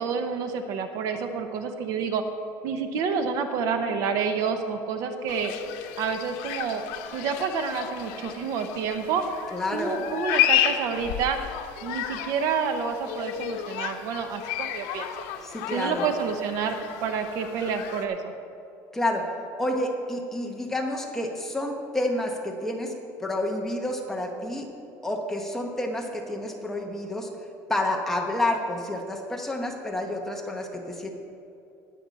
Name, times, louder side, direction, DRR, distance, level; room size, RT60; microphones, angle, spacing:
voice 1, 0.0-2.2 2.6-5.5 6.0-6.8 7.1-9.2 9.7-11.4 11.8-15.1 15.7-18.3, right 6 dB, 55° right, 7 dB, 0.8 m, -28 dB
sound 1, 5.3-18.1, left 11 dB, 85° left, 0.9 m, -32 dB
voice 2, 9.5-10.0 15.4-16.1 18.9-19.3 19.6-22.9 23.2-24.7 25.0-27.3 27.7-31.1, left 1 dB, 5° left, 1 dB, 1.0 m, -29 dB
19.5 x 7.0 x 4.1 m, 2.7 s
cardioid pair, 175°, 7 cm